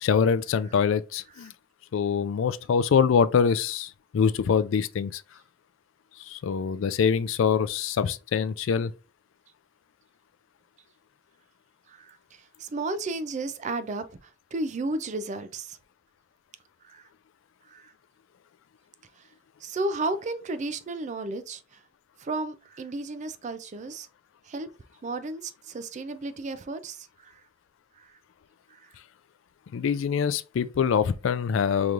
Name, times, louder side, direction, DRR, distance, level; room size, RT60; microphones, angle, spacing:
voice 1, 0.0-1.5 1.9-5.2 6.3-8.9 29.7-31.9, left 6 dB, 70° left, 0.3 m, -24 dB
voice 2, 12.6-14.1 14.5-15.8 16.9-17.0 17.7-17.9 19.6-21.8 22.2-24.1 24.5-24.7 25.0-27.4 28.0-28.1, right 2 dB, 35° right, 0.4 m, -33 dB
5.0 x 3.0 x 2.4 m
head